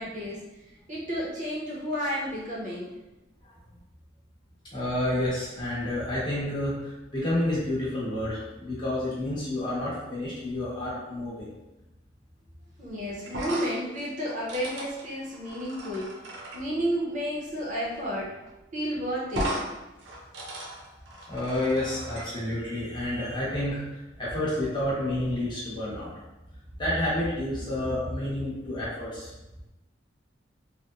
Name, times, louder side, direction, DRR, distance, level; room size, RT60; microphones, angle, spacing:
voice 1, 0.0-2.9 12.8-16.2 16.5-18.3 18.7-19.5 27.5-27.7, equal, 40° right, -5 dB, 0.5 m, -32 dB
voice 2, 4.7-11.5 21.3-26.1 26.8-29.3, left 1 dB, 25° left, -8 dB, 0.8 m, -29 dB
sound 1, 13.2-16.6 18.1-18.2 18.5-18.6 19.3-19.7 20.0-22.3, right 1 dB, 85° right, 0.6 m, -36 dB
2.8 x 2.0 x 2.3 m, 0.99 s
head